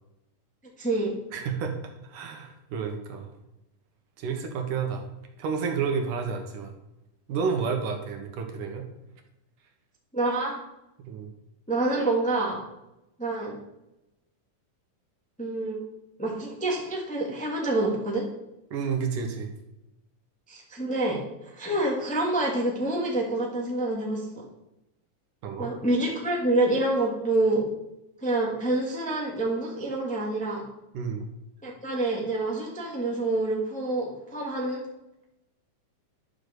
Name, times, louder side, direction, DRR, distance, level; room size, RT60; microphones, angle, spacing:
voice 1, 0.8-1.2 10.1-10.6 11.7-12.6 13.2-13.5 15.4-15.8 16.2-18.3 20.5-24.5 25.6-27.7 28.2-30.6 31.6-34.8, right 2 dB, 5° left, -2 dB, 1.6 m, -27 dB
voice 2, 1.3-1.8 2.1-3.3 4.2-5.0 5.4-6.7 7.3-8.8 11.0-11.3 18.7-19.5 25.4-25.7 30.9-31.3, right 6 dB, 70° right, 4 dB, 2.8 m, -30 dB
11.5 x 6.4 x 6.8 m, 0.90 s
omnidirectional pair, 3.9 m